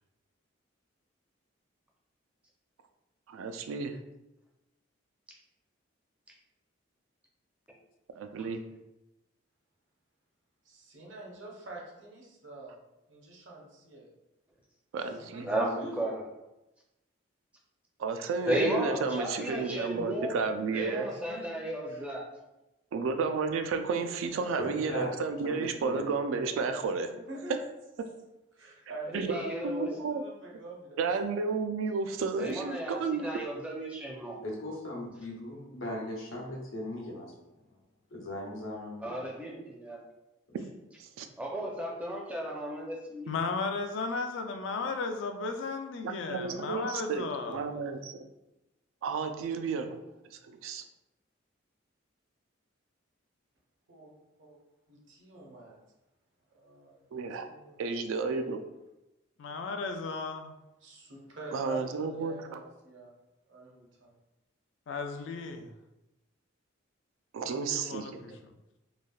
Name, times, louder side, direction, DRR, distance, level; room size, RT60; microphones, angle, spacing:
voice 1, 3.3-3.9 8.1-8.6 14.9-15.5 18.0-21.1 22.9-27.1 29.1-29.4 29.6-30.2 31.0-33.3 41.0-41.3 46.0-48.2 49.0-50.0 50.3-50.8 57.1-57.5 57.8-58.6 61.5-62.3 67.3-68.2, right 4 dB, 85° right, 7 dB, 0.3 m, -32 dB
voice 2, 10.6-12.8 13.1-14.1 15.2-16.1 21.1-21.5 21.8-22.1 27.1-27.5 28.5-31.1 53.9-54.1 54.4-54.6 54.9-55.8 56.5-57.8 60.8-63.1 63.5-64.1, right 2 dB, 65° right, -1 dB, 0.7 m, -46 dB
voice 3, 15.4-16.1 18.5-20.4 20.7-22.3 29.1-29.9 32.4-34.4 39.0-40.0 41.4-43.3, right 1 dB, 5° right, -2 dB, 0.4 m, -34 dB
voice 4, 24.6-26.0 34.4-37.3 38.1-39.3, left 1 dB, 85° left, -2 dB, 0.8 m, -38 dB
voice 5, 43.3-47.6 59.4-60.5 64.9-65.7 67.4-68.5, left 4 dB, 65° left, 6 dB, 0.3 m, -35 dB
3.2 x 2.3 x 2.2 m, 0.94 s
head